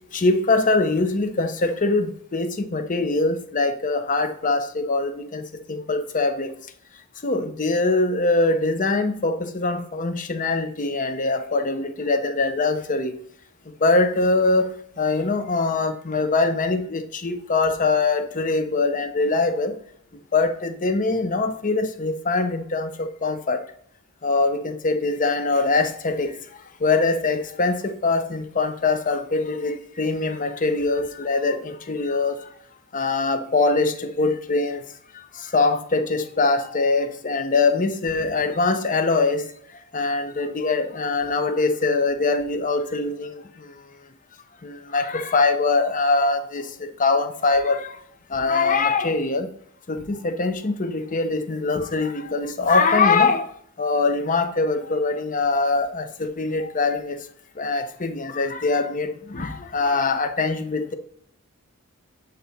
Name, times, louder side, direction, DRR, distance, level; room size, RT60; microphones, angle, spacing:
voice 1, 0.1-6.5 7.2-13.1 13.8-14.7 15.0-19.8 20.3-22.9 23.2-23.6 24.2-26.4 26.8-32.3 32.9-34.8 35.5-39.4 39.9-43.4 44.6-47.9 48.3-49.5 49.9-53.5 53.8-57.2 57.6-60.9, left 3 dB, 40° left, 0.7 m, -23 dB
8.5 x 4.0 x 4.2 m
head